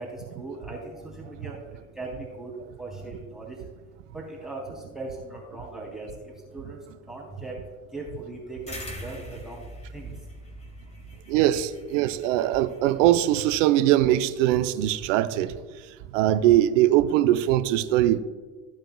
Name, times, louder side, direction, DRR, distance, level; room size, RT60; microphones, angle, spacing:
voice 1, 0.0-3.6 4.1-6.8 7.0-7.5 7.9-9.6 9.9-10.1, right 2 dB, ahead, 3.2 m, -39 dB
sound 1, 8.7-13.6, equal, 15° left, 2.4 m, -43 dB
voice 2, 11.3-15.5 16.1-18.2, right 13 dB, 70° right, 0.7 m, -21 dB
15.0 x 8.9 x 2.3 m
hypercardioid pair, 70°, 38 cm